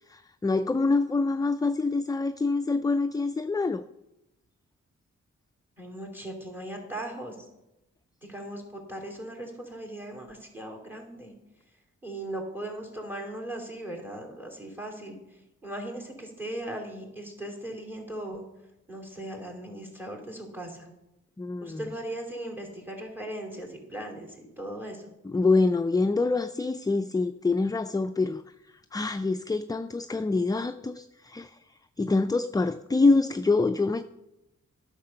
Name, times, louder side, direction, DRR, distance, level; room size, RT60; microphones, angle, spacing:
voice 1, 0.1-3.8 21.4-21.8 25.2-28.4 28.9-31.6 32.0-34.0, left 3 dB, 15° left, 0.4 m, -25 dB
voice 2, 5.8-7.4 8.3-11.3 12.0-15.2 15.6-18.4 18.9-20.9 21.6-25.0, right 1 dB, 5° right, 3.0 m, -38 dB
10.5 x 6.6 x 5.5 m
cardioid pair, 50°, 30 cm